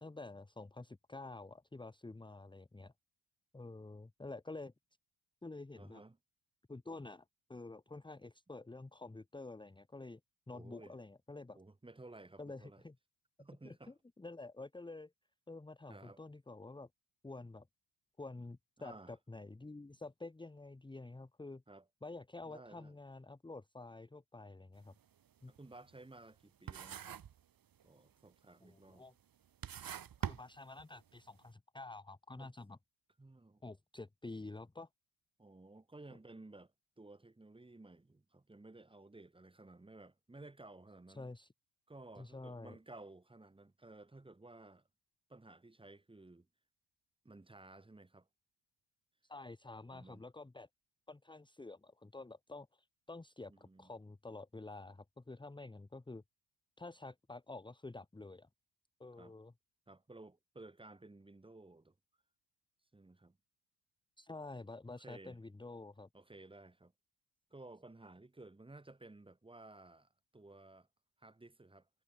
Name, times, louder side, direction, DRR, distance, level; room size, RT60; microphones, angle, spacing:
voice 1, 0.0-2.9 3.5-4.7 5.4-6.0 6.7-10.2 10.5-11.6 12.4-12.9 13.6-15.1 15.5-16.9 17.2-17.7 18.2-21.6 22.0-24.9 25.4-25.5 28.6-29.1 30.2-32.8 33.6-34.9 41.1-41.5 42.2-42.7 49.2-50.7 51.1-56.2 56.8-58.5 59.0-59.5 64.2-66.1, left 2 dB, 10° left, 1.6 m, -49 dB
voice 2, 5.8-6.2 10.5-11.0 11.5-12.8 13.4-13.9 15.9-16.2 18.8-19.1 21.7-21.9 22.4-23.0 25.5-27.2 27.8-29.0 32.4-32.5 33.2-33.6 35.4-36.7 37.0-41.3 41.9-44.8 45.3-46.5 47.2-48.3 49.9-50.2 53.4-53.9 59.2-59.3 59.9-61.9 62.9-63.4 65.0-65.4 66.1-66.9 67.5-70.9 71.2-71.9, right 2 dB, 10° right, 2.7 m, -56 dB
sound 1, 24.8-25.0 25.4-26.4 26.7-27.4 27.7-28.3 28.9-29.0 29.5-31.1, right 9 dB, 45° right, 2.9 m, -44 dB
cardioid pair, 150°, 48 cm